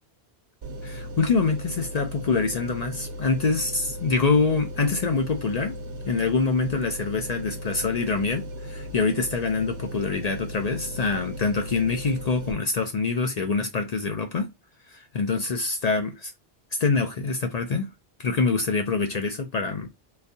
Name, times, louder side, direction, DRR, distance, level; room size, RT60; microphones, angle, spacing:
sound 1, 0.6-12.5, equal, 75° right, 1.0 m, -37 dB
voice 1, 0.8-5.7 6.1-14.5 15.1-16.3 16.7-17.9 18.2-19.9, left 4 dB, 50° left, 0.5 m, -25 dB
3.8 x 2.6 x 2.6 m
omnidirectional pair, 1.1 m